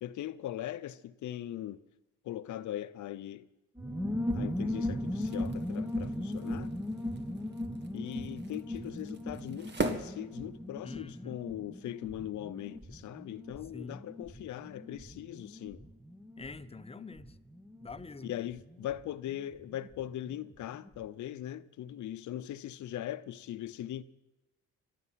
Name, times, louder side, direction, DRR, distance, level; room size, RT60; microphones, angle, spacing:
voice 1, 0.0-1.8 2.2-3.5 4.3-6.7 7.9-15.8 18.2-24.0, left 12 dB, 75° left, 0.8 m, -40 dB
sound 1, 3.8-20.1 20.3-20.4 20.6-21.0, left 1 dB, 5° right, 0.9 m, -38 dB
sound 2, 5.0-11.0, right 3 dB, 35° right, 2.0 m, -41 dB
voice 2, 10.8-11.4 13.7-14.1 16.4-17.4 17.8-18.3, left 3 dB, 20° left, 0.8 m, -45 dB
25.5 x 8.7 x 5.8 m
cardioid pair, 90°, 30 cm